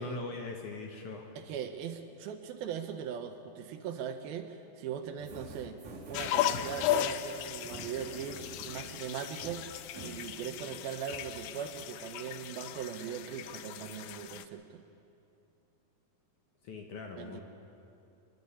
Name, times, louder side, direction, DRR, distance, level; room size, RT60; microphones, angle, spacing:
voice 1, 0.0-1.3 16.6-17.4, left 3 dB, 65° left, 2 dB, 2.2 m, -41 dB
voice 2, 1.5-5.8 6.1-14.8 17.1-17.4, right 8 dB, 75° right, 7 dB, 2.6 m, -40 dB
sound 1, 5.2-10.7 11.0-11.3, right 2 dB, 50° right, 2.3 m, -48 dB
sound 2, 6.1-14.4, left 11 dB, 85° left, 2.0 m, -36 dB
24.5 x 11.5 x 9.9 m, 2.8 s
omnidirectional pair, 4.7 m